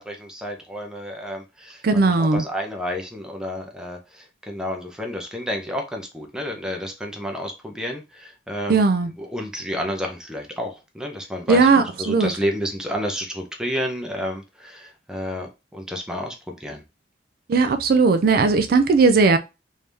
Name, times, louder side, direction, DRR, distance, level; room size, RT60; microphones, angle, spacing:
voice 1, 0.0-8.8 9.2-11.7 12.0-16.8, equal, 5° right, 0.7 m, -30 dB
voice 2, 1.8-2.4 8.7-9.1 11.5-12.3 17.5-19.4, right 4 dB, 55° right, 0.4 m, -17 dB
3.4 x 2.7 x 3.3 m
head